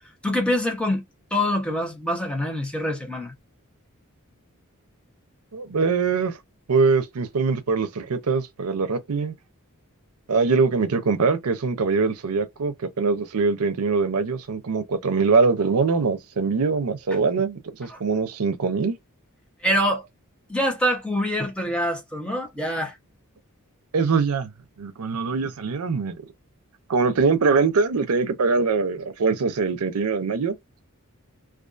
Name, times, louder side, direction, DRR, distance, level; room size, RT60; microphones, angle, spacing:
voice 1, 0.2-1.0 1.3-3.3 17.9-18.0 19.6-20.1 20.5-23.0, equal, 5° left, 0.8 m, -25 dB
voice 2, 5.5-6.3 6.7-9.3 10.3-18.9 23.9-24.5 24.8-26.2 26.9-30.5, right 4 dB, 85° right, 0.5 m, -23 dB
2.5 x 2.3 x 2.4 m
head